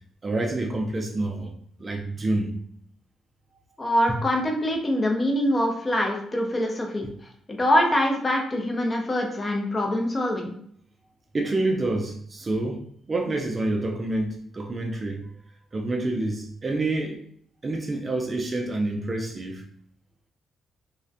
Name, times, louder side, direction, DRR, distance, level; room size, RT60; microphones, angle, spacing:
voice 1, 0.2-1.5 1.8-2.6 4.1-4.2 11.3-12.8 13.1-15.3 15.7-17.2 17.6-19.6, right 2 dB, 30° right, 0.4 m, -27 dB
voice 2, 3.8-7.1 7.5-10.5, left 1 dB, 25° left, 0.5 m, -24 dB
2.4 x 2.1 x 2.4 m
cardioid pair, 90°, 0 cm